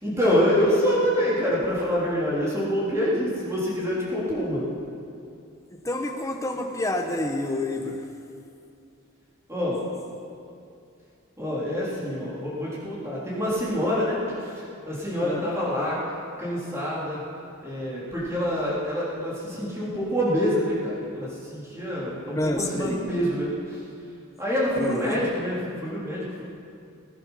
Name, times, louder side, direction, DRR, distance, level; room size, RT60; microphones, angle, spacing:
voice 1, 0.0-4.6 9.5-9.8 11.4-14.5 14.9-16.0 16.4-17.2 17.6-23.8 24.4-26.4, equal, 15° right, -7 dB, 3.7 m, -26 dB
voice 2, 5.8-8.0 15.2-15.5 22.4-23.0 24.8-25.2, left 1 dB, 15° left, 3 dB, 1.2 m, -28 dB
20.0 x 10.0 x 5.8 m, 2.5 s
head